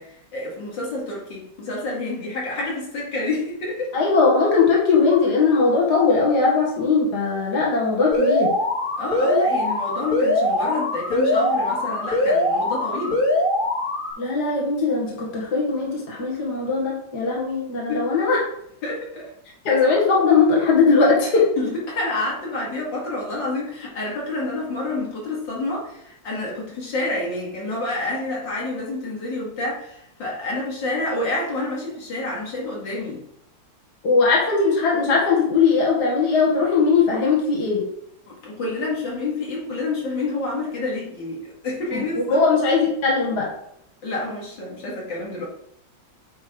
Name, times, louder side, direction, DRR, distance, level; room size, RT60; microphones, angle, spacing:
voice 1, 0.0-3.9 9.0-13.2 17.9-18.1 18.8-19.3 21.6-33.2 38.3-42.5 44.0-45.5, left 2 dB, 90° left, -4 dB, 2.9 m, -28 dB
voice 2, 3.9-8.5 14.2-18.4 19.6-21.5 34.0-37.8 41.9-43.5, left 4 dB, 65° left, -3 dB, 2.3 m, -19 dB
Alarm, 8.1-14.1, left 1 dB, 25° left, 2.3 m, -22 dB
9.1 x 3.4 x 5.0 m, 0.77 s
omnidirectional pair, 1.9 m